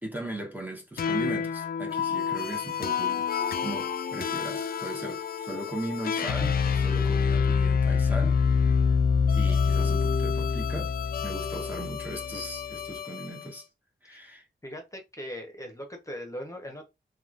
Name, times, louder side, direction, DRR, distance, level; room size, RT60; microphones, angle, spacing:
voice 1, 0.0-3.3 3.6-8.4 9.3-10.9 11.2-13.6 14.0-14.4, right 1 dB, 10° right, 0.9 m, -38 dB
sound 1, 1.0-13.5, left 6 dB, 55° left, 0.4 m, -27 dB
Keyboard (musical), 3.4-6.2, equal, 30° right, 1.7 m, -45 dB
voice 2, 14.6-16.9, equal, 15° left, 1.0 m, -40 dB
3.0 x 2.4 x 2.5 m
cardioid pair, 40°, 19 cm